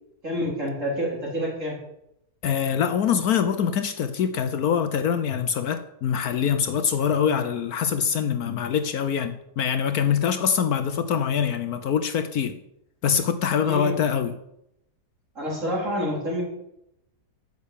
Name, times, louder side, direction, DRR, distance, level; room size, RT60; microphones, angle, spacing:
voice 1, 0.2-1.8 13.6-14.0 15.4-16.4, equal, 45° right, 4.1 m, -28 dB
voice 2, 2.4-12.6 13.0-14.4, left 7 dB, 65° left, 1.1 m, -24 dB
10.0 x 6.8 x 8.4 m
omnidirectional pair, 1.8 m